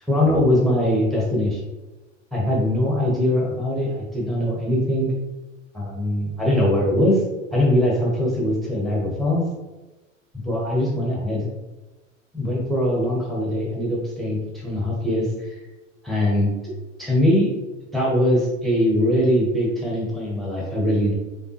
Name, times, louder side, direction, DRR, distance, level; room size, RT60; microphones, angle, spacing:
voice 1, 0.1-1.6 2.3-5.1 5.7-7.2 7.5-9.4 10.4-11.5 12.3-15.6 16.0-16.5 17.0-17.5 17.9-21.1, left 1 dB, ahead, -4 dB, 0.8 m, -21 dB
5.0 x 2.3 x 3.0 m, 1.1 s
figure-of-eight pair, 85°, 39 cm